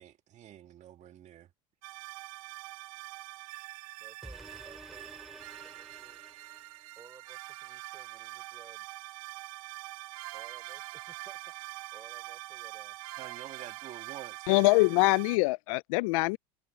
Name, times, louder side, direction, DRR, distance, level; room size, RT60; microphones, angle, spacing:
voice 1, 0.0-1.5 13.2-14.5, right 11 dB, 40° right, 2.1 m, -48 dB
sound 1, 1.8-15.4, right 19 dB, 80° right, 1.4 m, -44 dB
voice 2, 4.0-6.2 7.0-8.9 10.3-13.0, right 5 dB, 20° right, 4.7 m, -57 dB
sound 2, 4.2-7.2 7.7-7.8, equal, ahead, 2.5 m, -51 dB
voice 3, 14.5-16.4, left 24 dB, 75° left, 0.4 m, -24 dB
supercardioid pair, 115°, 18 cm